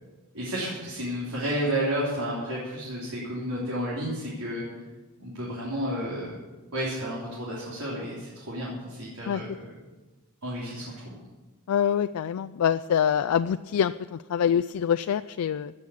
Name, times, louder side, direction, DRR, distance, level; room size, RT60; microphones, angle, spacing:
voice 1, 0.3-4.6 5.2-6.3 6.7-9.6 10.4-11.2, equal, 85° right, -6 dB, 3.5 m, -31 dB
voice 2, 11.7-15.7, left 8 dB, 90° left, 10 dB, 0.4 m, -25 dB
15.5 x 6.4 x 8.3 m, 1.2 s
head